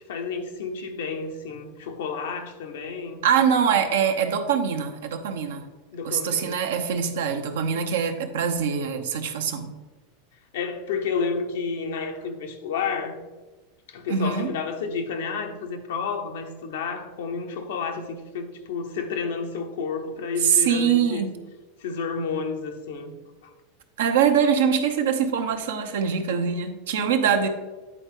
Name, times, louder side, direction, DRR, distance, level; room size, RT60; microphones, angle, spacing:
voice 1, 0.1-3.2 5.9-6.6 10.5-13.2 13.9-21.3 21.8-23.1, left 5 dB, 65° left, 5 dB, 0.8 m, -31 dB
voice 2, 3.2-5.7 6.0-9.7 14.1-14.5 20.4-21.3 24.0-27.5, right 7 dB, 65° right, 6 dB, 0.8 m, -23 dB
9.6 x 4.4 x 3.6 m, 1.2 s
figure-of-eight pair, 85°, 0 cm